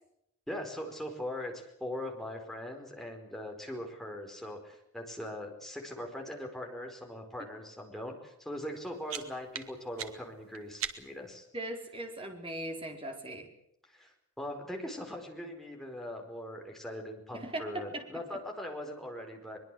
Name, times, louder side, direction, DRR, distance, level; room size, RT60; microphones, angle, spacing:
voice 1, 0.5-11.5 13.9-19.6, left 1 dB, ahead, 1 dB, 4.7 m, -41 dB
sound 1, 8.6-11.3, right 9 dB, 70° right, 2.2 m, -42 dB
voice 2, 11.5-13.5 17.3-18.1 18.3-18.4, right 1 dB, 25° right, 3 dB, 4.5 m, -39 dB
23.0 x 22.0 x 7.8 m, 0.75 s
head